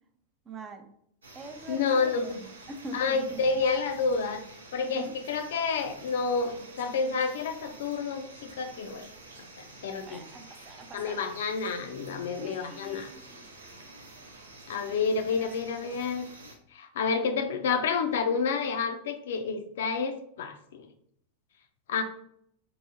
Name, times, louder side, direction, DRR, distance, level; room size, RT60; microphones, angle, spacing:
voice 1, 0.5-0.9 1.3-2.3 2.7-3.6 4.8-5.1 10.1-11.4 12.4-13.5 15.3-16.1, right 2 dB, 25° right, 6 dB, 0.5 m, -44 dB
sound 1, 1.2-16.6, right 2 dB, 70° right, 0.6 m, -49 dB
voice 2, 1.7-2.4 2.9-4.4 4.7-9.1 9.8-10.2 10.9-13.1 14.7-16.2 16.7-20.9 21.9-22.0, left 5 dB, 60° left, 6 dB, 0.5 m, -29 dB
4.7 x 2.6 x 2.7 m, 0.67 s
figure-of-eight pair, 90°, 0 cm